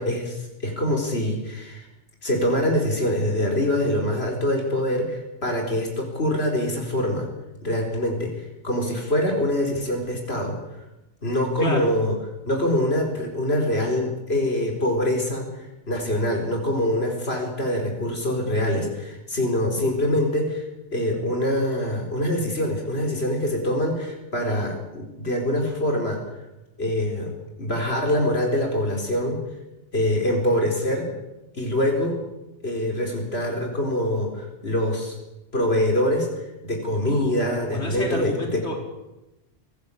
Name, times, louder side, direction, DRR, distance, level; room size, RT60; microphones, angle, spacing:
voice 1, 0.0-1.9 2.2-7.3 7.6-10.6 11.2-12.1 12.5-15.5 15.9-26.2 26.8-27.3 27.6-29.4 29.9-31.1 31.5-32.2 32.6-35.1 35.5-36.3 36.6-38.6, left 1 dB, 70° left, 1 dB, 4.7 m, -24 dB
voice 2, 11.6-11.9 37.7-38.8, equal, 85° left, 1 dB, 4.9 m, -28 dB
26.0 x 19.0 x 8.6 m, 0.98 s
omnidirectional pair, 1.1 m